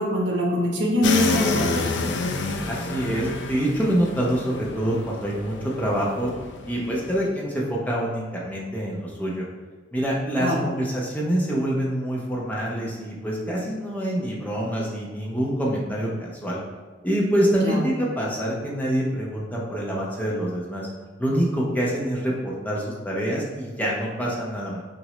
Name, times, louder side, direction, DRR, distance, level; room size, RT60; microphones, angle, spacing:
voice 1, 0.0-1.9 10.4-10.7 17.6-17.9, left 1 dB, 60° right, -1 dB, 0.9 m, -23 dB
sound 1, 1.0-7.3, left 3 dB, 65° left, 0.4 m, -29 dB
voice 2, 2.7-6.3 6.7-9.4 9.9-16.6 17.0-20.9 21.2-24.8, equal, 10° left, -4 dB, 0.8 m, -26 dB
5.9 x 2.6 x 3.1 m, 1.4 s
head